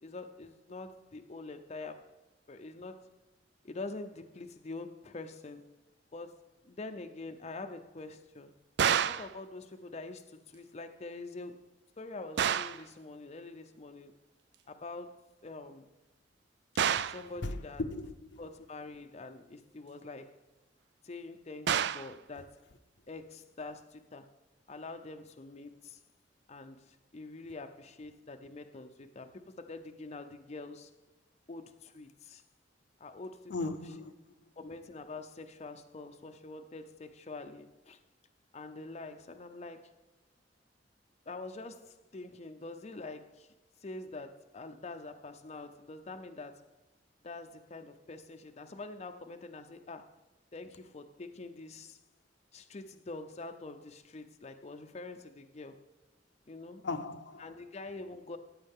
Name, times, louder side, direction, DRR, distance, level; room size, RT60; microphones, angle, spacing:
voice 1, 0.0-2.1 2.5-3.1 3.6-5.7 6.1-8.5 9.0-11.6 12.0-14.2 14.7-15.9 17.0-17.8 18.4-20.4 21.0-22.7 23.1-24.3 24.7-26.0 26.5-30.9 31.5-32.4 33.0-33.7 34.6-38.0 38.5-39.9 41.3-43.5 43.8-46.7 47.2-50.1 50.5-52.0 52.5-55.8 56.5-56.8 57.4-58.4, left 3 dB, 35° left, 0.6 m, -45 dB
sound 1, 8.8-9.3 12.4-12.9 16.8-17.3 21.7-22.1, right 8 dB, 65° right, 0.4 m, -28 dB
voice 2, 17.4-18.4 33.5-34.1 56.8-57.5, left 2 dB, 75° left, 0.7 m, -37 dB
14.5 x 8.7 x 3.6 m
head